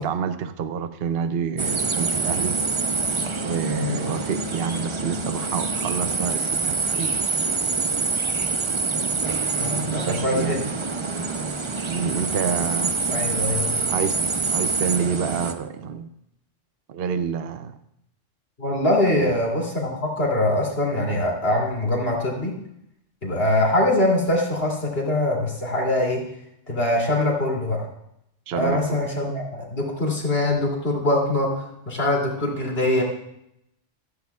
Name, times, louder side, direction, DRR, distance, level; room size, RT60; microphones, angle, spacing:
voice 1, 0.0-2.6 3.4-7.2 10.0-10.6 11.9-13.0 13.9-14.2 14.5-16.1 16.9-17.8 19.1-19.3 28.5-29.0, right 7 dB, 60° right, 10 dB, 0.8 m, -28 dB
sound 1, 1.6-15.5, right 4 dB, 30° right, 0.6 m, -26 dB
voice 2, 9.6-10.6 13.1-13.8 18.6-22.5 23.2-26.2 26.7-27.8 28.5-33.0, left 1 dB, 55° left, -2 dB, 3.1 m, -23 dB
14.5 x 14.5 x 2.4 m, 0.79 s
omnidirectional pair, 1.3 m